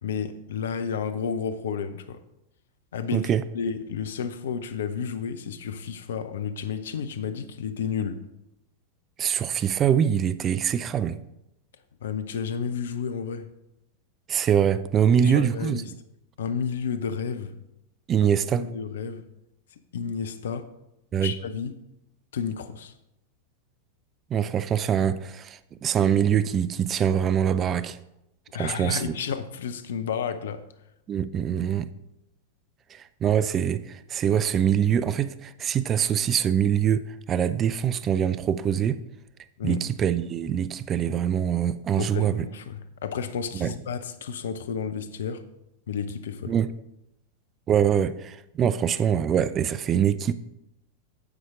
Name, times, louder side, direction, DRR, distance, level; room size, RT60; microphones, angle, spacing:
voice 1, 0.0-2.2 2.9-8.2 12.0-13.5 15.2-15.9 16.4-17.5 18.6-19.2 19.9-20.7 21.2-21.8 22.3-22.9 28.5-30.6 39.6-39.8 42.0-45.4 45.9-46.6, left 6 dB, 60° left, 0.7 m, -31 dB
voice 2, 9.2-11.2 14.3-15.8 18.1-18.6 21.1-21.3 24.3-28.0 28.6-29.1 31.1-31.9 32.9-37.0 37.3-39.0 39.6-42.5 43.5-43.7 46.5-46.7 47.7-50.3, right 9 dB, 25° right, 0.4 m, -24 dB
9.6 x 7.8 x 3.7 m
figure-of-eight pair, 90°, 0 cm